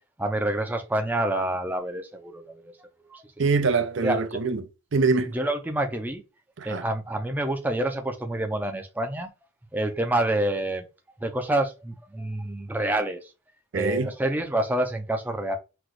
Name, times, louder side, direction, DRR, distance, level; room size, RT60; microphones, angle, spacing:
voice 1, 0.2-2.7 3.1-3.2 4.0-4.4 5.3-6.2 6.6-9.3 9.7-10.8 11.2-13.3 13.7-15.6, right 1 dB, 10° right, 0.5 m, -27 dB
voice 2, 3.4-4.6 4.9-5.3 6.6-6.8 13.7-14.1, right 4 dB, 60° right, 0.6 m, -24 dB
5.9 x 2.4 x 3.1 m
head